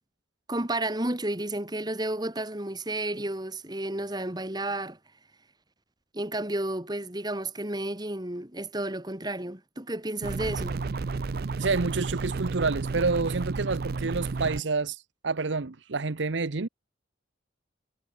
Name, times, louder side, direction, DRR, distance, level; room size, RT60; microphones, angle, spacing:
voice 1, 0.5-5.0 6.1-10.8, right 1 dB, 20° right, 2.7 m, -32 dB
sound 1, 10.2-14.6, right 4 dB, 55° right, 0.5 m, -32 dB
voice 2, 11.6-16.7, right 4 dB, 75° right, 0.9 m, -28 dB
head